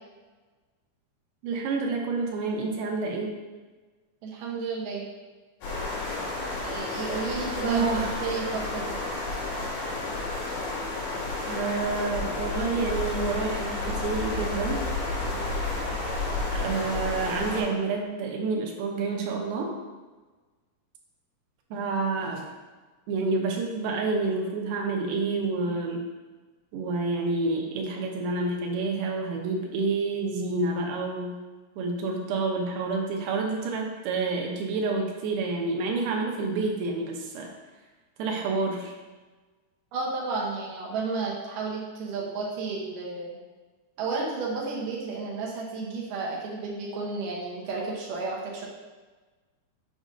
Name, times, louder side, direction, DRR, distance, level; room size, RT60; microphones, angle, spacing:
voice 1, 1.4-3.3 7.6-8.1 11.5-14.8 16.5-19.7 21.7-22.5 23.1-26.0 26.7-31.4 31.8-37.5 38.2-38.9, right 3 dB, 85° right, 0 dB, 2.7 m, -28 dB
voice 2, 4.2-5.1 6.6-7.9 8.2-9.0 39.9-43.4 44.0-48.7, right 4 dB, 70° right, -3 dB, 2.3 m, -32 dB
sound 1, 5.6-17.6, left 2 dB, 80° left, 3.8 m, -31 dB
7.4 x 5.0 x 2.6 m, 1.3 s
omnidirectional pair, 4.5 m